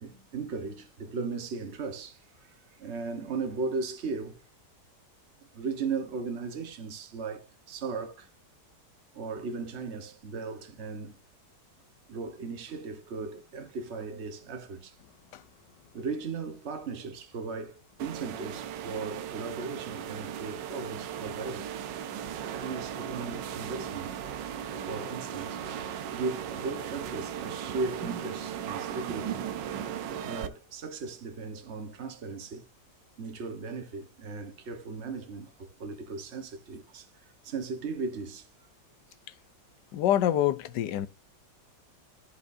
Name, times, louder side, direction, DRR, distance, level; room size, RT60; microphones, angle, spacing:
voice 1, 0.0-4.4 5.5-8.3 9.1-11.2 12.1-14.9 15.9-21.7 22.5-24.2 24.8-25.6 26.1-29.4 30.2-32.7 33.2-37.1 37.4-38.5, right 4 dB, 40° right, 1.3 m, -37 dB
sound 1, 18.0-30.5, right 9 dB, 90° right, 1.4 m, -37 dB
voice 2, 39.9-41.1, left 11 dB, 75° left, 1.3 m, -26 dB
13.5 x 5.2 x 2.6 m
omnidirectional pair, 1.9 m